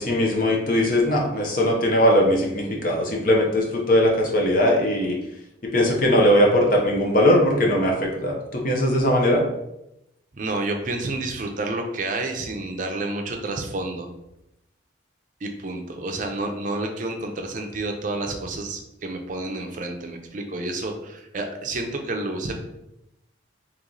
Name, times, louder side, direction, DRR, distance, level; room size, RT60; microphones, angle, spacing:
voice 1, 0.0-5.2 5.7-9.4, equal, 45° left, 0 dB, 0.8 m, -20 dB
voice 2, 10.3-14.1 15.4-22.5, right 2 dB, 40° right, 4 dB, 0.5 m, -29 dB
3.0 x 3.0 x 3.9 m, 0.86 s
head